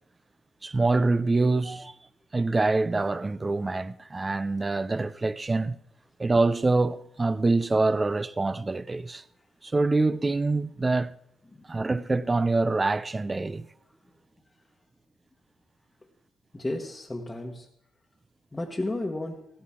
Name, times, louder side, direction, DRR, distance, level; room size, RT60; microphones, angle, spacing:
voice 1, 0.6-1.9 2.3-5.8 6.2-9.2 9.6-11.1 11.7-13.7, right 3 dB, 20° right, 0.4 m, -25 dB
voice 2, 16.5-17.7 18.5-19.5, left 2 dB, 15° left, 1.2 m, -33 dB
14.0 x 13.0 x 3.7 m
cardioid pair, 90°, 0 cm